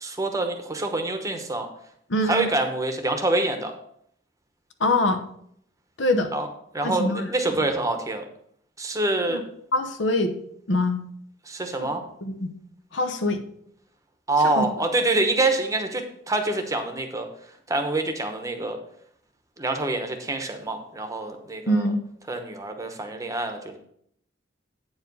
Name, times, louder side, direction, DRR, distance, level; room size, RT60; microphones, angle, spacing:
voice 1, 0.0-1.7 2.2-3.7 6.3-6.5 6.7-8.2 8.8-9.4 11.5-12.0 14.3-17.3 17.7-18.8 19.6-21.9 22.3-23.8, right 2 dB, 15° right, 5 dB, 0.9 m, -26 dB
voice 2, 2.1-2.5 4.8-5.2 6.0-6.3 6.8-7.3 9.3-9.4 9.7-10.3 10.7-11.0 11.8-11.9 12.2-12.5 12.9-13.4 14.4-14.7 21.7-22.0, left 1 dB, 70° left, 7 dB, 0.9 m, -24 dB
8.7 x 4.9 x 5.4 m, 0.67 s
head